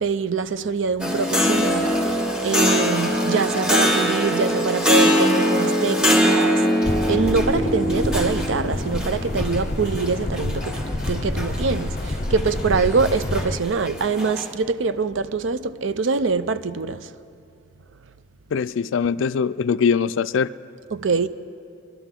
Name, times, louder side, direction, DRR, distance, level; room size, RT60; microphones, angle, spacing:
voice 1, 0.0-2.2 2.4-17.1 20.9-21.3, right 4 dB, 75° right, 0.5 m, -24 dB
sound 1, 1.0-14.5, equal, 5° right, 1.3 m, -22 dB
sound 2, 6.8-13.6, left 1 dB, 40° left, 0.7 m, -28 dB
voice 2, 18.5-20.5, left 6 dB, 75° left, 0.3 m, -22 dB
24.0 x 12.0 x 3.7 m
head